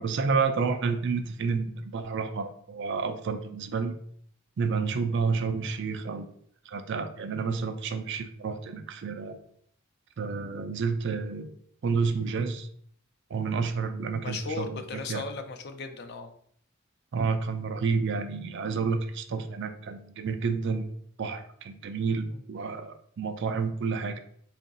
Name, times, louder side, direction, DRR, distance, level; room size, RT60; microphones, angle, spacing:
voice 1, 0.0-4.0 4.6-6.3 6.7-9.4 10.2-11.5 11.8-12.7 13.3-15.2 17.1-24.2, right 5 dB, 55° right, 8 dB, 0.4 m, -30 dB
voice 2, 14.2-16.3 22.3-22.4, left 4 dB, 50° left, 7 dB, 0.4 m, -36 dB
3.7 x 2.5 x 3.9 m, 0.64 s
head